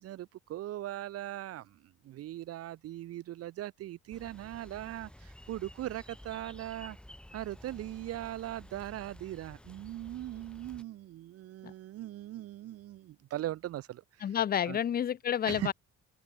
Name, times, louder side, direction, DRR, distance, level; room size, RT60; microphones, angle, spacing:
voice 1, 0.0-7.0 7.3-14.0 14.7-14.8 15.4-15.7, right 14 dB, 55° right, 0.4 m, -40 dB
sound 1, 4.1-10.8, left 1 dB, 5° left, 0.9 m, -52 dB
voice 2, 14.2-15.7, left 9 dB, 30° left, 0.4 m, -30 dB
open air
cardioid pair, 90°, 30 cm